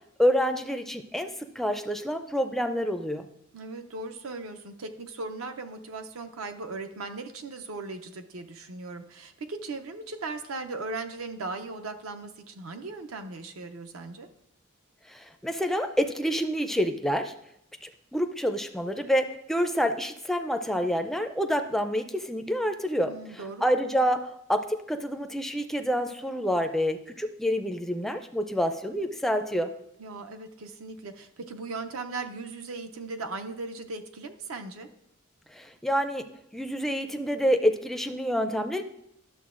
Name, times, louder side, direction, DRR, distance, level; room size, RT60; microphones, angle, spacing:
voice 1, 0.2-1.3 1.6-3.2 15.1-17.3 17.8-23.1 23.6-29.7 35.5-36.3 36.5-38.8, equal, ahead, 7 dB, 0.4 m, -27 dB
voice 2, 3.5-14.3 23.1-23.6 30.0-34.9, right 3 dB, 70° right, 7 dB, 0.6 m, -38 dB
11.0 x 6.6 x 2.5 m, 0.80 s
head